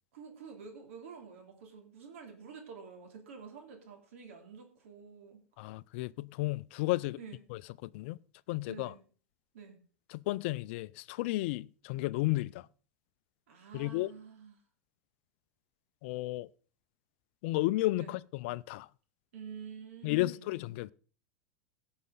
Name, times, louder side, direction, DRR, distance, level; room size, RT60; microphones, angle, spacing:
voice 1, 0.1-5.4 7.2-7.4 8.7-9.0 9.5-9.8 13.5-14.6 18.0-18.2 19.3-20.6, right 6 dB, 75° right, 3.0 m, -49 dB
voice 2, 5.6-7.2 7.5-8.2 8.5-8.9 10.1-12.7 13.7-14.1 16.0-16.5 17.4-18.9 20.0-20.9, left 19 dB, 60° left, 0.4 m, -33 dB
17.0 x 6.4 x 4.0 m
hypercardioid pair, 95°, 7 cm